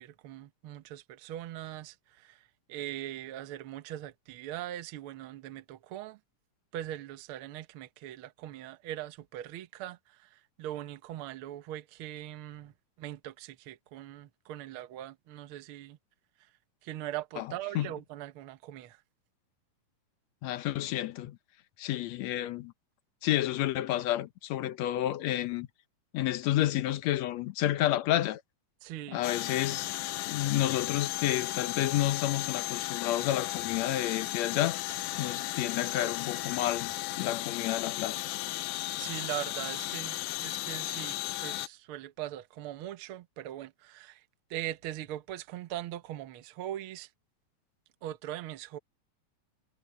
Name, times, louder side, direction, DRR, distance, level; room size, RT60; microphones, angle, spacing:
voice 1, 0.0-2.4 2.7-6.2 6.7-12.7 13.0-16.0 16.8-19.0 28.8-29.2 39.0-44.2 44.5-47.1 48.0-48.8, right 13 dB, 60° right, 1.5 m, -41 dB
voice 2, 20.4-21.4 21.8-22.7 23.2-25.7 26.1-28.4 29.1-29.9 30.3-34.8 35.2-38.3, left 13 dB, 70° left, 2.0 m, -30 dB
sound 1, 29.2-41.7, left 17 dB, 85° left, 2.1 m, -35 dB
omnidirectional pair, 3.4 m